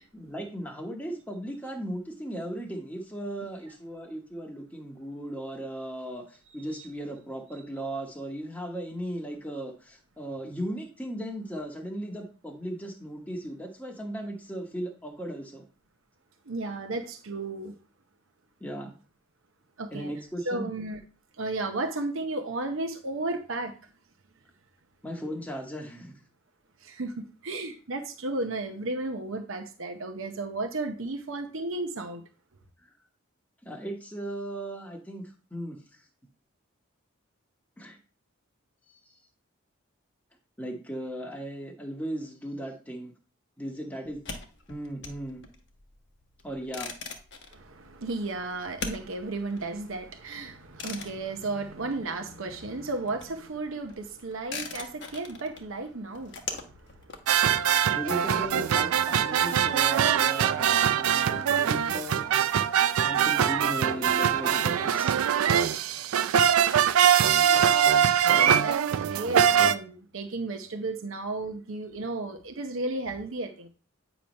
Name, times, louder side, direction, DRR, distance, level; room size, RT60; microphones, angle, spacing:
voice 1, 0.1-15.6 18.6-18.9 19.9-20.7 25.0-26.2 32.8-32.9 33.6-35.8 37.8-38.0 38.9-39.0 40.6-43.1 43.6-44.2 44.7-45.4 46.4-46.9 57.7-62.3 63.0-65.1 68.9-69.0, right 1 dB, 5° left, 1.0 m, -37 dB
voice 2, 16.5-17.7 19.8-20.1 20.5-21.0 21.4-23.8 26.8-32.2 47.5-56.4 57.0-57.1 68.2-73.7, right 2 dB, 70° right, 0.8 m, -34 dB
sound 1, 44.1-52.4 52.7-58.5, left 4 dB, 55° left, 1.0 m, -42 dB
sound 2, 57.3-69.7, right 9 dB, 85° right, 0.4 m, -23 dB
8.5 x 3.0 x 5.2 m
head